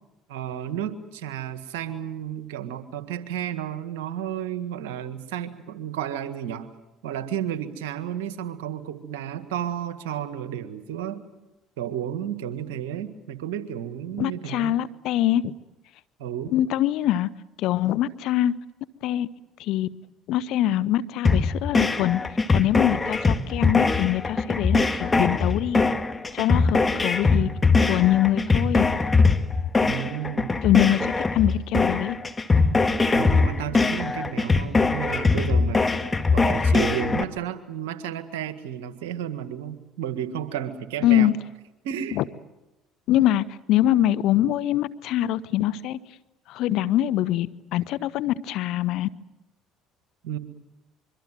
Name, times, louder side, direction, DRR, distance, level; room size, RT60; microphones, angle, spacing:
voice 1, 0.3-6.7 7.0-11.2 11.8-14.8 16.2-16.6 29.8-30.6 33.1-41.3 41.8-42.2 50.2-50.4, right 10 dB, 75° right, 10 dB, 1.7 m, -32 dB
voice 2, 14.2-15.5 16.5-17.3 17.6-18.5 19.0-19.3 19.6-19.9 20.3-22.2 22.5-25.8 26.3-27.5 27.9-28.8 30.6-32.2 41.0-41.3 42.2-42.3 43.1-46.0 46.5-49.1, left 13 dB, 65° left, 20 dB, 0.9 m, -23 dB
sound 1, 21.2-37.2, left 3 dB, 20° left, 1.8 m, -22 dB
25.5 x 23.5 x 7.6 m, 1.0 s
hypercardioid pair, 65°, 0 cm